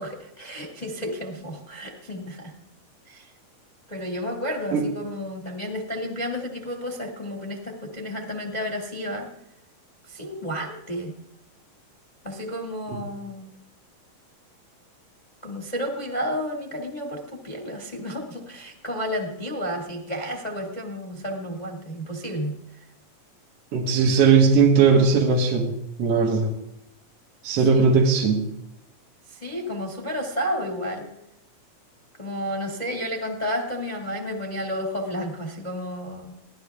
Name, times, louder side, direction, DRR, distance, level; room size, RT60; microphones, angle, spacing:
voice 1, 0.0-2.5 3.1-3.3 3.9-9.3 10.1-11.1 12.2-13.5 15.4-22.5 27.7-27.9 29.3-31.1 32.2-36.3, equal, 15° left, 2 dB, 1.5 m, -31 dB
voice 2, 23.7-25.7 26.0-26.5 27.4-28.5, right 5 dB, 50° right, -1 dB, 2.5 m, -18 dB
23.5 x 16.5 x 3.6 m, 0.83 s
omnidirectional pair, 3.9 m